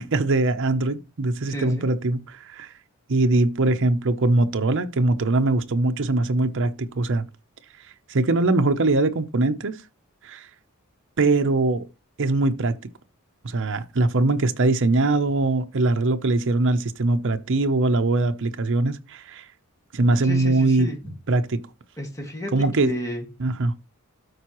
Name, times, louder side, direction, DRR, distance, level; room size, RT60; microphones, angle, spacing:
voice 1, 0.0-2.7 3.1-7.3 8.1-9.8 10.2-10.5 11.2-11.8 12.2-12.7 13.4-19.4 19.9-20.9 21.3-21.6 22.5-22.9 23.4-23.7, right 2 dB, 55° right, 0.7 m, -22 dB
voice 2, 1.5-1.9 20.2-21.0 22.0-22.5 22.8-23.2, equal, 15° left, 2.0 m, -32 dB
13.0 x 4.7 x 3.0 m
head